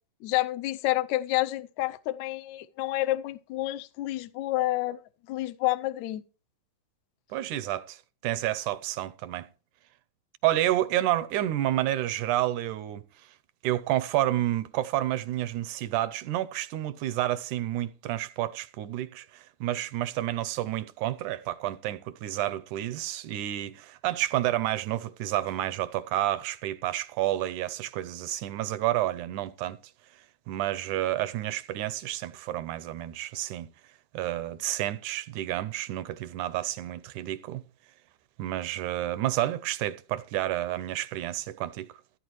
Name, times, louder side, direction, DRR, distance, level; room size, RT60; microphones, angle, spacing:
voice 1, 0.2-5.0 5.3-6.2, left 16 dB, 85° left, 1.6 m, -29 dB
voice 2, 7.3-9.5 10.4-13.0 13.6-29.8 30.5-33.7 34.1-37.6 38.4-41.9, right 14 dB, 80° right, 1.8 m, -30 dB
15.0 x 9.2 x 3.1 m
omnidirectional pair, 4.1 m